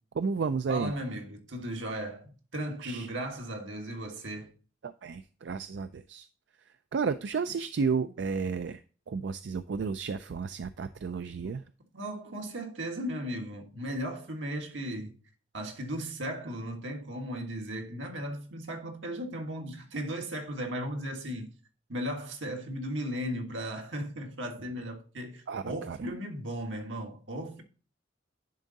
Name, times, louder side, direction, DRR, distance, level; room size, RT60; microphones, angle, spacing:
voice 1, 0.1-0.9 2.8-3.1 4.8-6.3 6.7-8.8 9.1-11.6 25.5-26.0, right 5 dB, 65° right, 0.4 m, -32 dB
voice 2, 0.7-4.5 11.4-11.6 11.9-15.1 15.5-21.5 21.9-27.6, equal, 85° right, 1.5 m, -36 dB
10.5 x 3.7 x 4.0 m
head